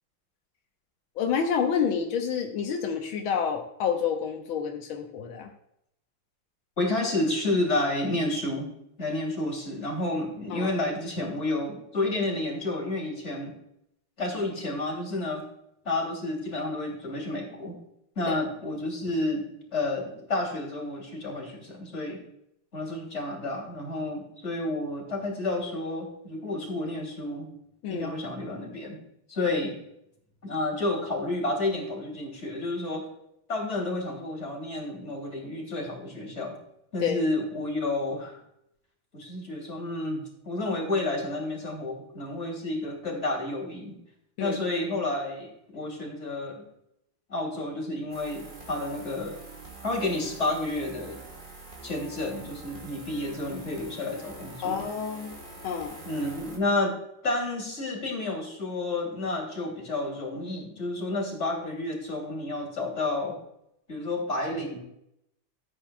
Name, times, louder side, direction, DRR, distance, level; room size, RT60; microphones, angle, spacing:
voice 1, 1.2-5.5 10.5-10.7 18.3-18.4 27.8-28.2 37.0-37.2 44.4-44.6 54.6-55.4 55.6-56.0, left 7 dB, 90° left, 2 dB, 1.8 m, -28 dB
voice 2, 6.8-8.7 9.0-13.5 14.2-15.4 15.8-17.8 18.2-22.2 22.7-27.5 27.9-29.0 29.3-29.8 30.4-33.1 33.5-36.6 36.9-38.4 39.1-43.9 44.4-46.6 47.3-49.4 49.8-51.2 51.8-54.8 56.0-57.0 57.2-63.4 63.9-64.8, left 2 dB, 35° left, -1 dB, 3.2 m, -30 dB
sound 1, 48.1-56.6, right 2 dB, 25° right, 2.0 m, -45 dB
14.0 x 8.8 x 2.3 m, 0.77 s
omnidirectional pair, 2.2 m